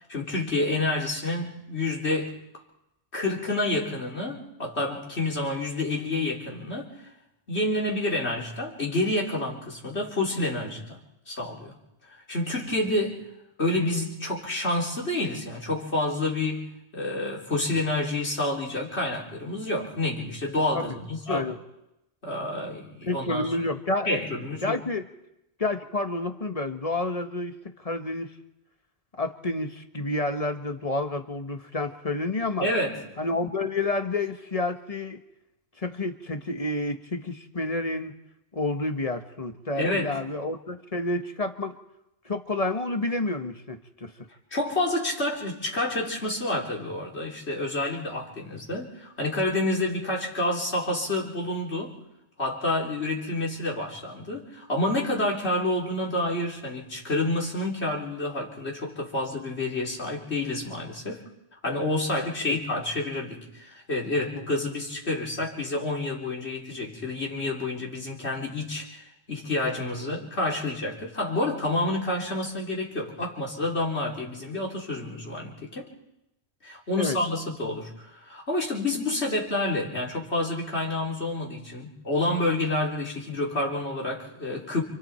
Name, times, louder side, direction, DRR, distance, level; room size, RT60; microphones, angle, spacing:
voice 1, 0.1-2.3 3.1-6.9 7.5-11.0 11.3-11.8 12.1-13.3 13.6-16.7 16.9-21.5 22.2-23.5 24.1-24.8 32.6-33.0 39.8-40.2 44.5-52.0 52.4-61.2 61.6-75.9 76.6-84.8, left 2 dB, 80° left, -3 dB, 4.3 m, -29 dB
voice 2, 23.0-24.1 24.6-25.0 25.6-27.5 27.8-28.3 29.2-32.7 33.2-35.2 35.8-38.1 38.5-41.8 42.2-44.1 62.5-62.6 77.0-77.2, left 2 dB, 35° left, 7 dB, 1.5 m, -29 dB
29.0 x 28.5 x 4.5 m, 0.89 s
omnidirectional pair, 1.1 m